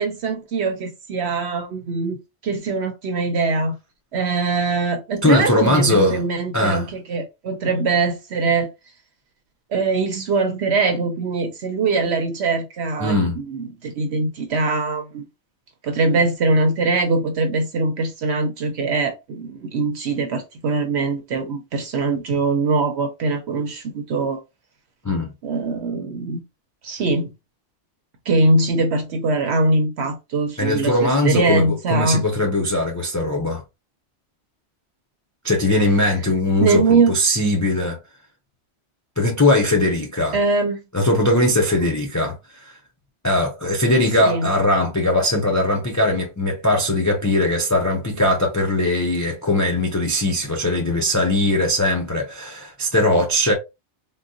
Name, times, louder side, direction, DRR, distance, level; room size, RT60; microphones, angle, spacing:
voice 1, 0.0-3.7 4.1-8.7 9.7-15.2 15.8-24.4 25.4-26.4 26.8-27.3 28.3-32.2 36.6-37.2 40.3-40.8 44.2-44.5, right 3 dB, 65° right, 0.8 m, -22 dB
voice 2, 5.2-6.2 6.5-6.9 13.0-13.4 25.0-25.3 30.6-33.6 35.4-38.0 39.2-40.4 40.9-42.7 43.2-53.5, left 1 dB, 25° left, 0.4 m, -20 dB
3.8 x 2.2 x 2.5 m
omnidirectional pair, 1.2 m